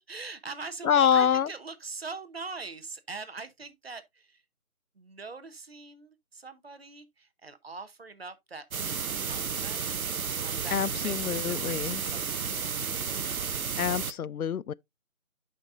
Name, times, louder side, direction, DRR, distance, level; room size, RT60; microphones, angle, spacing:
voice 1, 0.1-4.4 5.0-9.8 10.4-12.8, right 4 dB, 45° right, 0.9 m, -42 dB
voice 2, 0.8-1.5 10.7-12.0 13.8-14.7, left 8 dB, 80° left, 0.5 m, -26 dB
sound 1, 8.7-14.1, right 6 dB, 75° right, 0.7 m, -32 dB
11.0 x 5.3 x 2.5 m
figure-of-eight pair, 165°, 43 cm